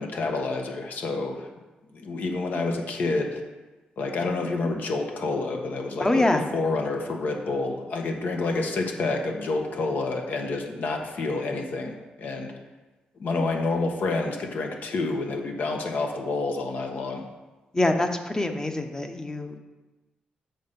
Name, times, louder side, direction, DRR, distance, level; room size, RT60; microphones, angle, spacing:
voice 1, 0.0-1.5 1.9-3.4 4.0-12.5 13.2-17.2, left 3 dB, 65° left, 3 dB, 1.2 m, -28 dB
voice 2, 6.0-6.4 17.7-19.6, left 2 dB, 20° left, 6 dB, 0.9 m, -24 dB
7.9 x 5.4 x 5.2 m, 1.2 s
cardioid pair, 80°, 3 cm